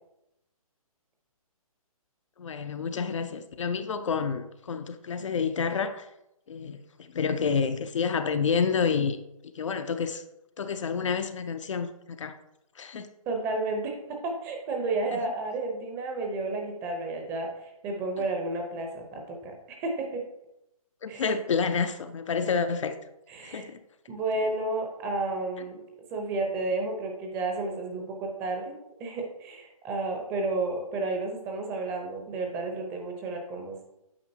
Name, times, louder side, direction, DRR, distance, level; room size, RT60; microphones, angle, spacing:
voice 1, 2.4-6.1 6.5-9.2 9.5-10.2 10.6-12.4 12.8-13.1 15.1-15.2 21.0-22.9 23.4-23.8, left 6 dB, 55° left, 0.6 m, -29 dB
voice 2, 13.3-20.2 21.1-21.3 23.3-23.7 24.1-25.8 26.1-28.7 29.0-33.8, right 2 dB, 15° right, 0.7 m, -32 dB
8.7 x 5.1 x 2.8 m
hypercardioid pair, 155°, 19 cm